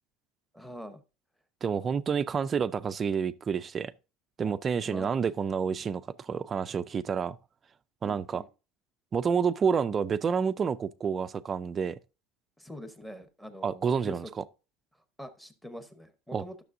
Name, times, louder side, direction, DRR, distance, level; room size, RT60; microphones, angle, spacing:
voice 1, 0.5-1.0 4.8-5.1 5.8-5.9 8.0-8.5 12.6-14.3 15.2-16.6, equal, 5° left, 0.8 m, -44 dB
voice 2, 1.6-3.9 4.4-7.4 8.0-8.4 9.1-12.0 13.6-14.4 16.3-16.4, right 6 dB, 20° right, 0.3 m, -29 dB
12.0 x 6.7 x 2.5 m
cardioid pair, 165°, 0 cm